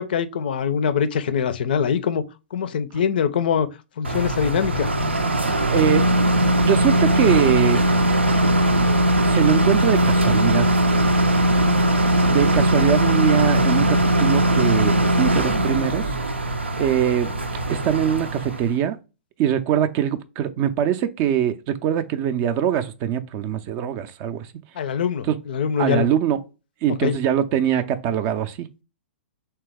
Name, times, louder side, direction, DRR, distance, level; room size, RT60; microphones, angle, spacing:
voice 1, 0.0-2.2 2.5-3.7 4.0-4.9 11.5-11.8 24.8-26.1 27.0-27.2, left 7 dB, 55° left, 0.4 m, -23 dB
sound 1, 4.0-18.7, right 1 dB, 80° right, 0.5 m, -20 dB
voice 2, 5.5-6.0 6.6-7.8 9.3-10.7 12.2-16.1 16.8-17.3 17.7-19.0 19.4-24.5 25.3-25.4 25.8-26.4 26.8-28.7, right 10 dB, 30° right, 0.4 m, -22 dB
3.3 x 2.9 x 3.4 m
figure-of-eight pair, 110°, 6 cm